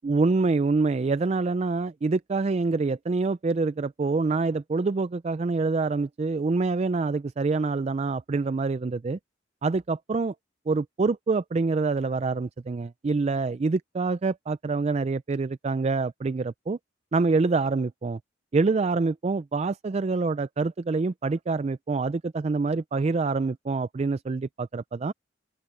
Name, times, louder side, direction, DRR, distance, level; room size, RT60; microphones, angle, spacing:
voice 1, 0.0-9.2 9.6-10.3 10.7-16.8 17.1-18.2 18.5-25.1, right 3 dB, 35° right, 0.3 m, -26 dB
open air
head